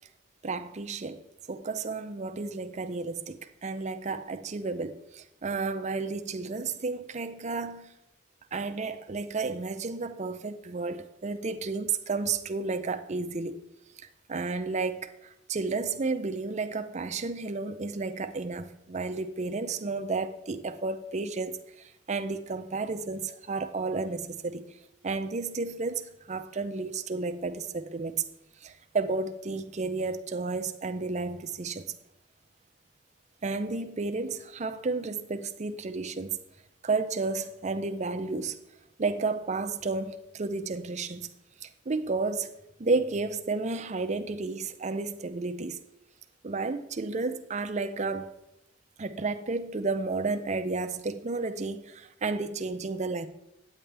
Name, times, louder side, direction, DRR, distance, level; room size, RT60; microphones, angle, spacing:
voice 1, 0.4-1.2 1.5-7.9 8.5-13.6 14.0-24.7 25.0-28.2 28.6-31.9 33.4-36.4 36.8-38.6 39.0-41.3 41.6-42.5 42.8-45.8 46.4-48.3 49.0-53.3, right 3 dB, 35° right, 0.5 m, -32 dB
8.7 x 8.6 x 3.4 m
head